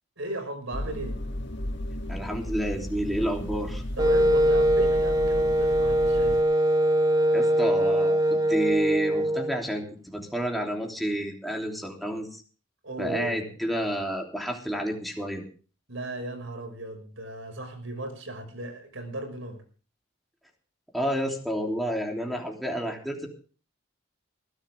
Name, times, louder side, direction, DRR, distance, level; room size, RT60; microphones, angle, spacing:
voice 1, 0.2-1.2 4.0-6.4 12.8-13.5 15.9-19.6, right 1 dB, 70° right, 6 dB, 5.8 m, -36 dB
sound 1, 0.7-6.4, left 1 dB, 55° left, 1.6 m, -34 dB
voice 2, 2.1-3.8 7.3-12.4 13.0-15.4 20.9-23.3, right 1 dB, ahead, 0 dB, 3.2 m, -30 dB
Wind instrument woodwind instrument, 4.0-9.6, right 1 dB, 20° right, 1.7 m, -22 dB
21.0 x 15.0 x 3.6 m, 0.39 s
head